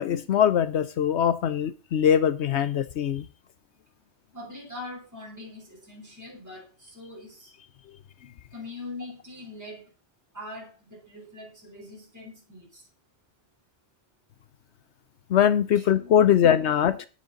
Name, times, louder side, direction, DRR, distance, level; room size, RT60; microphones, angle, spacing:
voice 1, 0.0-3.3 15.3-17.1, left 9 dB, 75° left, 14 dB, 1.0 m, -22 dB
voice 2, 4.3-7.5 8.5-9.8 10.3-12.9 15.7-15.9, left 2 dB, 15° right, -2 dB, 4.4 m, -42 dB
10.5 x 9.8 x 4.0 m, 0.33 s
omnidirectional pair, 1.1 m